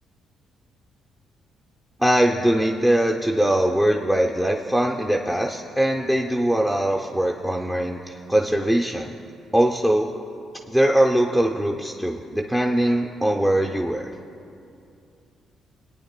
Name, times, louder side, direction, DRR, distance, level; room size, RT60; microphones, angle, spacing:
voice 1, 2.0-9.2 9.5-10.1 10.7-14.1, right 1 dB, 5° right, 0 dB, 0.5 m, -21 dB
26.0 x 9.0 x 2.2 m, 2.6 s
cardioid pair, 90°, 0 cm